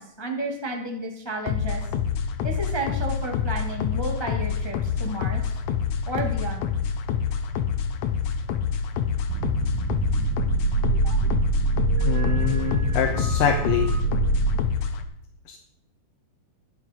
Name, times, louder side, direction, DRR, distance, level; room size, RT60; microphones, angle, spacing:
voice 1, 0.0-1.8 2.4-5.4 6.1-6.7, right 1 dB, 30° left, 1 dB, 0.4 m, -32 dB
sound 1, 1.5-15.0, left 7 dB, 70° left, 2.1 m, -27 dB
sound 2, 9.3-14.6, right 4 dB, 85° right, 2.5 m, -25 dB
voice 2, 12.0-13.9 15.5-15.6, left 8 dB, 90° left, 2 dB, 2.8 m, -25 dB
12.0 x 11.5 x 5.2 m, 0.75 s
omnidirectional pair, 3.9 m